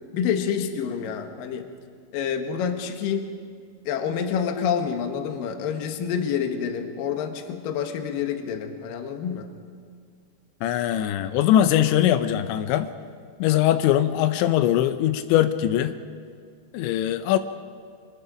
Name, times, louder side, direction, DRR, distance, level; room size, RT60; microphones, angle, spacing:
voice 1, 0.1-1.7 2.1-3.3 3.9-9.5, left 7 dB, 65° left, 6 dB, 2.6 m, -28 dB
voice 2, 10.6-12.9 13.4-16.0 16.7-17.4, left 12 dB, 85° left, 10 dB, 3.0 m, -21 dB
24.5 x 22.0 x 5.1 m, 2.2 s
omnidirectional pair, 5.2 m